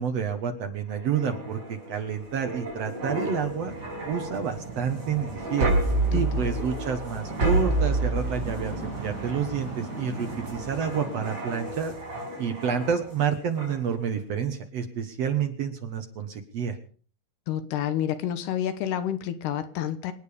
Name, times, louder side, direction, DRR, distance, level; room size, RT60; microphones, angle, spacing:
voice 1, 0.0-3.7 4.1-5.7 6.1-11.9 12.4-16.8, right 7 dB, 60° right, 6 dB, 1.7 m, -29 dB
sound 1, 0.9-13.2 13.6-13.8, right 2 dB, 25° right, 5.5 m, -30 dB
voice 2, 6.1-6.6 17.5-20.1, left 10 dB, 85° left, 11 dB, 3.2 m, -29 dB
27.0 x 9.1 x 5.1 m, 0.42 s
omnidirectional pair, 4.6 m